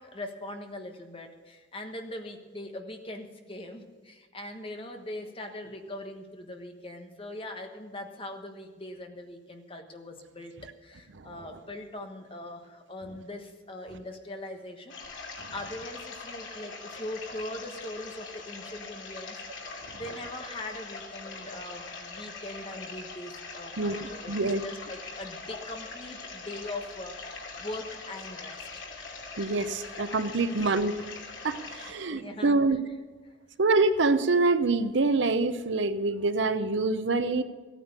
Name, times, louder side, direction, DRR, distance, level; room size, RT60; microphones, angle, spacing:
voice 1, 0.0-28.8 32.1-32.6, left 1 dB, 30° left, 4 dB, 1.3 m, -41 dB
sound 1, 14.9-31.9, left 4 dB, 85° left, 2.7 m, -42 dB
voice 2, 24.3-24.6 29.4-31.1 31.4-32.8 33.6-37.4, right 3 dB, 75° right, 12 dB, 0.7 m, -26 dB
15.0 x 9.2 x 6.8 m, 1.4 s
head